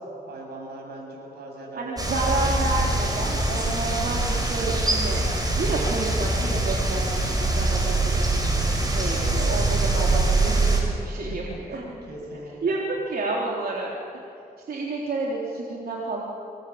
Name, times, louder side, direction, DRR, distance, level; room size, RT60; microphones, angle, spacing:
voice 1, 0.1-2.2 11.7-12.7, right 1 dB, 85° right, -1 dB, 8.0 m, -40 dB
voice 2, 1.8-5.2 5.5-8.5 8.8-11.8 12.6-14.2 14.7-16.2, right 3 dB, 65° right, -3 dB, 3.7 m, -30 dB
sound 1, 2.0-10.8, right 2 dB, 25° right, 6.4 m, -23 dB
26.0 x 21.0 x 8.8 m, 2.7 s
cardioid pair, 85°, 16 cm